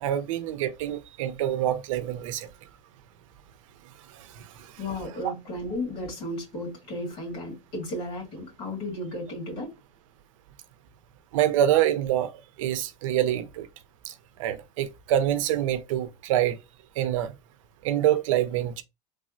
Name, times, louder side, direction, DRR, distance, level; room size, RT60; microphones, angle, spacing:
voice 1, 0.0-2.5 4.1-4.7 11.3-12.3 12.6-13.7 14.0-14.1 14.4-16.6 17.0-17.3 17.8-18.8, right 11 dB, 75° right, 0.5 m, -26 dB
voice 2, 4.8-9.7, left 1 dB, 50° left, 1.9 m, -34 dB
3.3 x 2.0 x 2.5 m
supercardioid pair, 180°, 17 cm